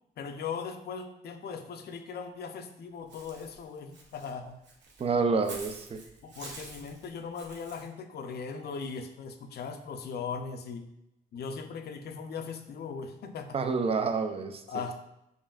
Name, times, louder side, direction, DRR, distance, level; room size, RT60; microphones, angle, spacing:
voice 1, 0.2-4.6 6.2-10.9 11.3-13.6 14.7-15.0, left 5 dB, 55° left, 7 dB, 0.5 m, -39 dB
Walk footsteps / Bird, 3.1-7.9, right 3 dB, 65° right, 0.8 m, -48 dB
voice 2, 5.0-6.0 13.5-14.8, right 4 dB, 30° right, 7 dB, 0.4 m, -28 dB
5.3 x 2.6 x 2.3 m, 0.86 s
cardioid pair, 90°, 20 cm